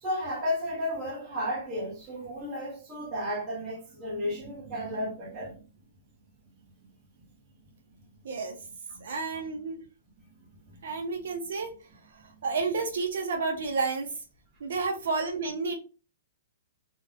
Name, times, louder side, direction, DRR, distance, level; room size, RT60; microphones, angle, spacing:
voice 1, 0.0-5.6 8.9-9.0 10.7-10.9, left 1 dB, 15° right, 0.8 m, -33 dB
voice 2, 8.2-8.6 9.0-9.8 10.8-11.7 12.4-14.1 14.6-15.8, right 4 dB, 60° right, 0.5 m, -30 dB
2.4 x 2.0 x 2.6 m
hypercardioid pair, 175°, 0 cm